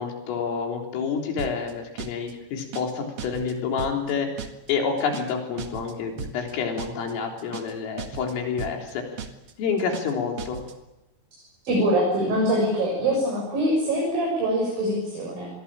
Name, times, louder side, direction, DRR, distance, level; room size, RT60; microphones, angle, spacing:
voice 1, 0.0-4.3 4.7-9.0 9.6-10.6, left 6 dB, 85° left, 2 dB, 6.2 m, -28 dB
sound 1, 1.4-1.7 2.0-2.3 2.6-2.9 3.2-3.5 3.8-4.1 4.4-4.7 5.0-5.3 5.6-5.9 6.2-6.5 6.8-7.1 7.4-7.7 8.0-8.3 8.6-8.9 9.2-9.5 9.8-10.1 10.4-10.7, right 6 dB, 65° right, 1.4 m, -36 dB
voice 2, 11.6-15.5, right 1 dB, 45° right, -1 dB, 8.3 m, -23 dB
27.5 x 22.0 x 8.8 m, 0.96 s
omnidirectional pair, 5.7 m